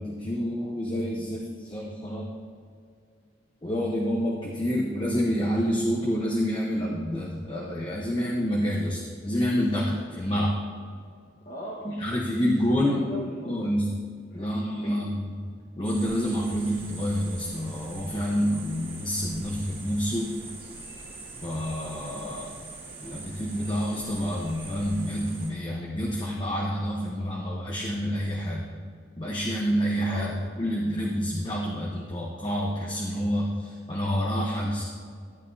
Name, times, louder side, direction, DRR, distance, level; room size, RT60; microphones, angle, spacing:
voice 1, 0.0-2.3 3.6-10.6 11.8-13.0 13.4-13.9 14.3-15.3 15.8-20.3 21.4-22.5 23.0-28.7 29.2-30.3 30.6-34.8, equal, 25° left, -3 dB, 1.0 m, -28 dB
voice 2, 11.4-13.6 14.3-14.5 14.8-15.0 30.0-30.7, equal, 50° left, -6 dB, 1.4 m, -39 dB
sound 1, 15.8-25.5, right 3 dB, 30° right, 1.8 m, -43 dB
14.0 x 9.1 x 2.8 m, 2.1 s
head